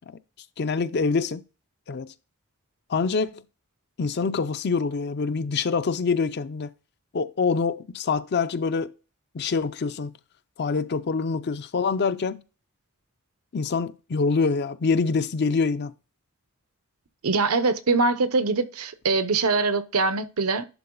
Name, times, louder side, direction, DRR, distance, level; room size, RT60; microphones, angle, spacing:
voice 1, 0.6-1.4 1.9-2.1 2.9-3.4 4.0-6.7 7.1-8.9 9.3-10.1 10.6-12.4 13.5-15.9, left 4 dB, 50° left, 0.5 m, -25 dB
voice 2, 17.2-20.7, right 3 dB, 85° right, 0.8 m, -23 dB
11.0 x 3.8 x 3.8 m
head